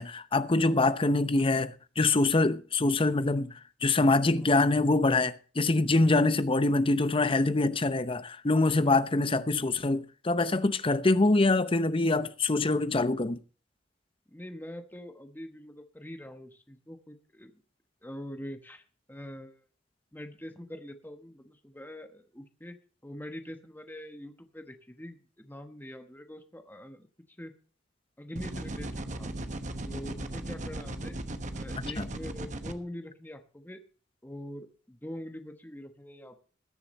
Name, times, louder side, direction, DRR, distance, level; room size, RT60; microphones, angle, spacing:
voice 1, 0.0-13.4 32.0-32.1, left 2 dB, 30° left, 0.7 m, -25 dB
voice 2, 8.7-9.2 14.3-17.5 18.0-19.6 20.1-22.8 23.0-27.1 27.4-27.5 28.2-29.3 29.9-31.2 31.5-33.8 34.2-36.4, left 1 dB, 10° left, 1.1 m, -44 dB
sound 1, 28.4-32.7, right 1 dB, 40° right, 1.1 m, -37 dB
20.5 x 6.9 x 4.2 m
head